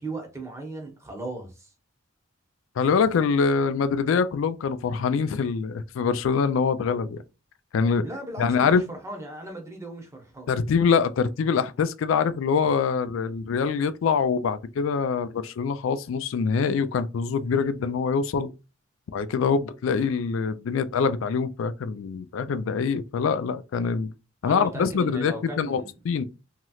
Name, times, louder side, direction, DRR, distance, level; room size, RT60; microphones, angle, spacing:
voice 1, 0.0-1.7 8.0-10.5 24.4-25.9, right 2 dB, 15° right, 0.9 m, -37 dB
voice 2, 2.8-7.2 7.7-8.1 8.4-8.8 10.5-18.5 19.1-24.1 24.4-26.2, left 5 dB, 70° left, 0.3 m, -24 dB
3.1 x 2.8 x 2.3 m
head